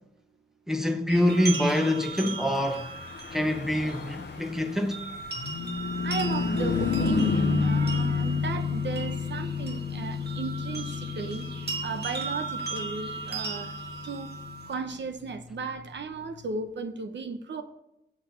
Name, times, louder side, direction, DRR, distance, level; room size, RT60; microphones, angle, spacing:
voice 1, 0.7-2.9 3.3-5.0, left 1 dB, ahead, 1.0 m, -25 dB
sound 1, 1.1-14.7, right 4 dB, 65° right, 1.9 m, -38 dB
Car passing by / Truck, 2.6-16.3, left 5 dB, 85° left, 0.7 m, -31 dB
voice 2, 6.0-11.5 11.8-13.8 14.0-14.3 14.7-17.6, right 4 dB, 90° right, 0.9 m, -35 dB
7.9 x 7.2 x 5.8 m
wide cardioid pair, 125°, 18 cm